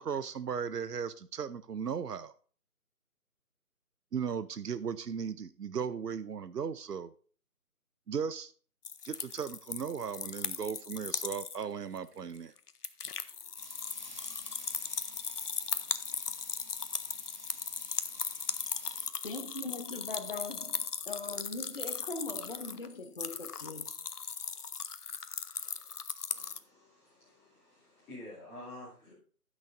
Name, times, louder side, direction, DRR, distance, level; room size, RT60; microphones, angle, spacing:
voice 1, 0.0-2.3 4.1-7.1 8.1-8.5 9.0-12.5, right 7 dB, 90° right, 0.6 m, -36 dB
sound 1, 8.8-11.6 12.0-12.1 12.4-26.6, left 6 dB, 80° left, 0.8 m, -38 dB
sound 2, 13.6-19.1, right 1 dB, 30° right, 0.8 m, -53 dB
voice 2, 19.2-23.9, left 3 dB, 35° left, 0.8 m, -40 dB
voice 3, 26.3-29.1, left 1 dB, 5° left, 2.4 m, -49 dB
17.0 x 6.3 x 2.5 m
figure-of-eight pair, 160°, 46 cm